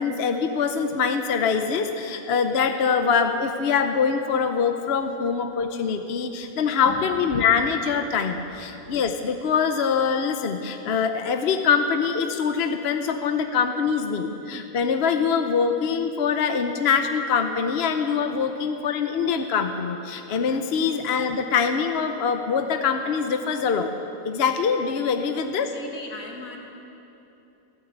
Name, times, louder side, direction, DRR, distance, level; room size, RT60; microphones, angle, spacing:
voice 1, 0.0-23.9 24.2-25.7, left 6 dB, 55° left, 6 dB, 0.9 m, -24 dB
voice 2, 25.7-26.6, left 3 dB, 70° left, 1 dB, 2.3 m, -38 dB
13.5 x 12.5 x 8.0 m, 2.9 s
omnidirectional pair, 1.5 m